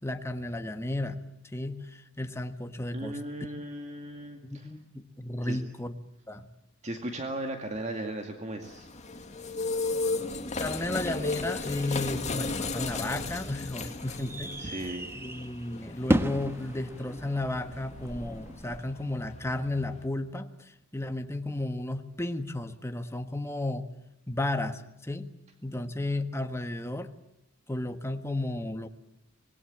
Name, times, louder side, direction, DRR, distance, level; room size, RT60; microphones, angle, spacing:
voice 1, 0.0-1.2 1.5-3.5 4.4-5.9 6.3-6.5 10.6-14.6 15.1-23.9 24.3-25.3 25.6-27.1 27.7-28.9, left 2 dB, 15° left, 7 dB, 1.4 m, -33 dB
voice 2, 2.9-4.7 5.4-5.6 6.8-8.9 14.6-15.1, right 1 dB, 35° right, 4 dB, 2.2 m, -36 dB
sound 1, 8.6-20.1, left 3 dB, 35° left, 2.3 m, -36 dB
sound 2, 13.7-18.8, equal, 10° right, 1.3 m, -34 dB
25.5 x 20.5 x 8.7 m, 0.77 s
head